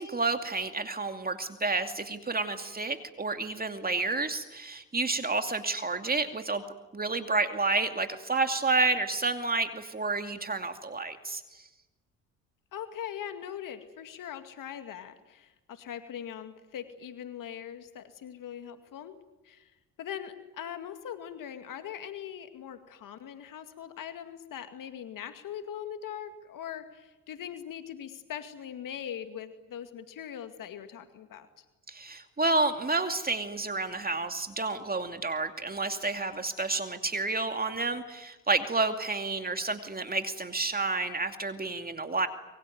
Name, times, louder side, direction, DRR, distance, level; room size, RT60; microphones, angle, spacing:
voice 1, 0.0-6.6 6.9-11.4 31.9-42.3, right 3 dB, 25° right, 7 dB, 2.5 m, -30 dB
voice 2, 12.7-19.2 19.4-31.7, left 9 dB, 60° left, 8 dB, 2.2 m, -41 dB
25.5 x 23.0 x 9.4 m, 1.1 s
hypercardioid pair, 55°, 36 cm